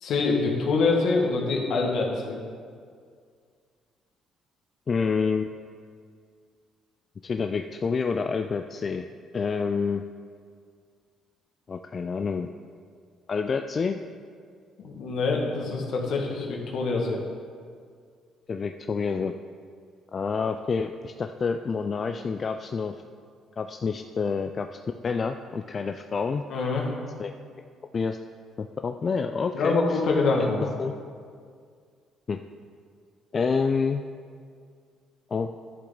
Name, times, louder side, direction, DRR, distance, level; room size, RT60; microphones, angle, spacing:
voice 1, 0.0-2.4 14.8-17.2 26.5-26.9 29.5-30.7, left 3 dB, 70° left, -1 dB, 1.7 m, -25 dB
voice 2, 4.9-5.5 7.2-9.1 9.3-10.0 11.7-12.5 13.3-14.0 18.5-19.3 20.1-23.0 23.6-24.8 25.0-26.4 27.2-27.3 27.9-28.2 28.6-30.0 30.4-30.5 30.8-30.9 32.3-32.4 33.3-34.0 35.3-35.5, left 5 dB, 40° left, 7 dB, 0.3 m, -28 dB
11.5 x 7.0 x 3.8 m, 2.1 s
cardioid pair, 85°, 0 cm